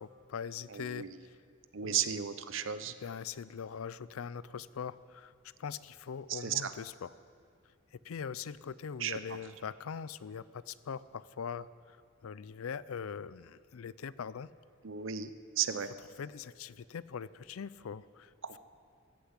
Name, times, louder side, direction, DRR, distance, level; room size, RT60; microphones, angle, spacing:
voice 1, 0.0-1.4 1.8-2.1 2.6-5.3 5.6-7.1 7.9-12.0 12.2-14.5 16.2-18.3, left 6 dB, 85° left, 18 dB, 0.4 m, -42 dB
voice 2, 0.7-1.2 1.7-2.9 6.3-6.7 9.0-9.4 14.8-15.9 18.4-18.6, right 9 dB, 65° right, 12 dB, 0.7 m, -35 dB
14.0 x 11.5 x 8.1 m, 2.3 s
head